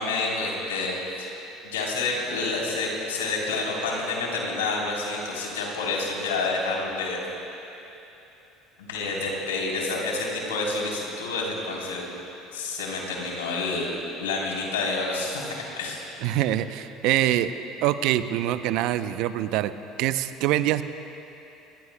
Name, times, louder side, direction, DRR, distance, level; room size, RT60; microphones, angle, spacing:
voice 1, 0.0-1.4 1.6-7.2 8.8-12.0 12.5-13.9 14.2-16.1, left 3 dB, 90° left, -2 dB, 3.4 m, -28 dB
voice 2, 16.2-17.5 17.8-19.7 20.0-20.8, right 13 dB, 65° right, 12 dB, 0.6 m, -24 dB
26.5 x 22.0 x 2.2 m, 2.9 s
hypercardioid pair, 70°, 0 cm